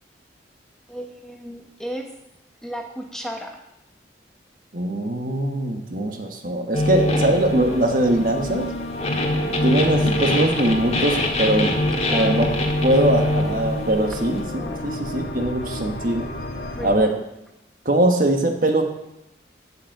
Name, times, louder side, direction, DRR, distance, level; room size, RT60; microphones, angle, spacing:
voice 1, 0.9-2.1 2.6-3.5 12.1-12.5 14.5-14.9 16.7-17.2, equal, 5° left, 2 dB, 1.0 m, -34 dB
voice 2, 4.7-8.7 9.6-11.7 12.1-12.5 12.8-16.3 16.8-17.1 17.8-18.8, right 1 dB, 50° right, 4 dB, 1.3 m, -21 dB
sound 1, 6.7-14.4, left 1 dB, 35° left, 1.5 m, -24 dB
sound 2, 7.4-17.0, left 1 dB, 65° left, 1.2 m, -33 dB
8.2 x 8.1 x 7.8 m, 0.89 s
head